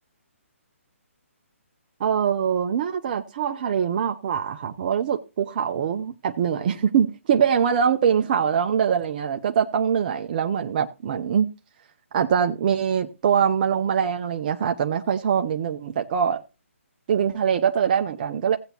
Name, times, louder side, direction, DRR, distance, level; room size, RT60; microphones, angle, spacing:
voice 1, 2.0-11.5 12.1-16.4 17.1-18.6, right 7 dB, 35° right, 0.6 m, -23 dB
16.0 x 8.0 x 2.9 m
hypercardioid pair, 150°, 8 cm